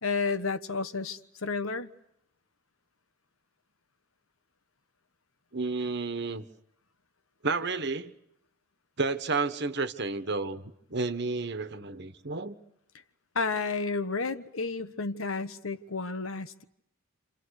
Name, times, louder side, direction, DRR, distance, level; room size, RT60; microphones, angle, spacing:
voice 1, 0.0-1.9 13.3-16.6, left 4 dB, 75° left, 1.3 m, -31 dB
voice 2, 5.5-6.4 7.4-8.1 9.0-12.5, right 3 dB, 50° right, 1.4 m, -31 dB
29.0 x 28.5 x 6.6 m
head